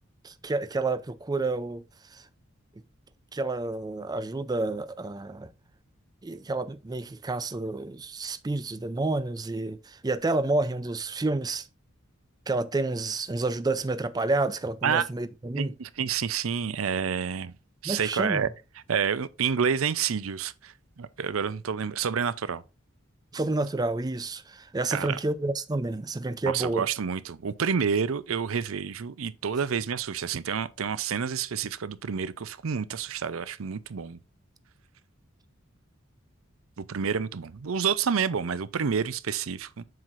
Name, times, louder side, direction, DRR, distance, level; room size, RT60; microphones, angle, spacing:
voice 1, 0.2-1.8 2.1-2.3 3.3-5.5 6.2-11.7 12.5-15.7 17.8-18.5 23.3-26.9, right 2 dB, 20° right, 0.4 m, -29 dB
voice 2, 15.6-17.5 17.8-18.5 18.9-22.6 24.9-25.2 26.5-34.2 36.8-39.8, right 6 dB, 85° right, 0.5 m, -29 dB
7.6 x 5.8 x 2.5 m
head